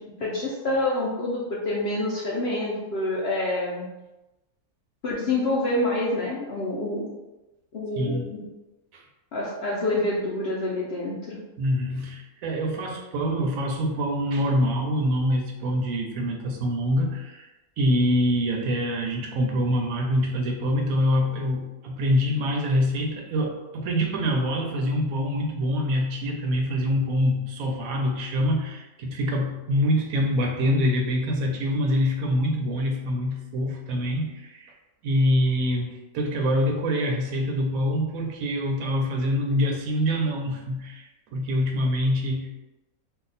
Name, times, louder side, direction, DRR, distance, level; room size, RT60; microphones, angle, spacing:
voice 1, 0.0-3.9 5.0-7.1 7.7-8.4 9.3-11.4, left 2 dB, 60° left, -5 dB, 0.6 m, -27 dB
voice 2, 8.0-8.3 8.9-9.0 11.6-17.5 17.8-34.7 35.0-42.5, equal, 70° right, 1 dB, 0.9 m, -25 dB
2.7 x 2.3 x 3.9 m, 1.0 s
omnidirectional pair, 1.6 m